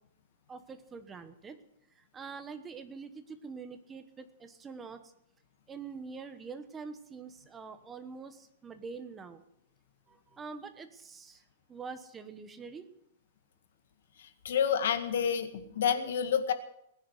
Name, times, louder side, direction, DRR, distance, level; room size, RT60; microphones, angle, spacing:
voice 1, 0.5-1.6 2.1-5.0 5.7-9.4 10.1-11.4 11.7-12.8, right 5 dB, 10° right, 9 dB, 1.1 m, -45 dB
voice 2, 14.2-16.5, left 8 dB, 70° left, 8 dB, 1.9 m, -29 dB
19.5 x 10.5 x 6.6 m, 0.77 s
supercardioid pair, 170°, 0 cm